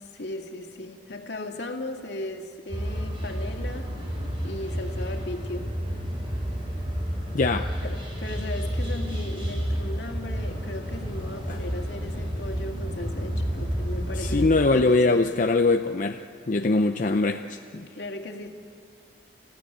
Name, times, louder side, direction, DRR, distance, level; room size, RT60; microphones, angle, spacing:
voice 1, 0.0-3.9 4.4-5.7 7.8-15.3 17.9-18.5, left 2 dB, 75° left, 4 dB, 2.2 m, -37 dB
sound 1, 2.7-14.5, equal, 30° right, 6.5 m, -30 dB
voice 2, 7.3-7.7 11.5-11.6 14.2-16.2 16.5-17.9, left 3 dB, 45° left, 5 dB, 0.6 m, -22 dB
28.5 x 15.5 x 10.0 m, 2.4 s
head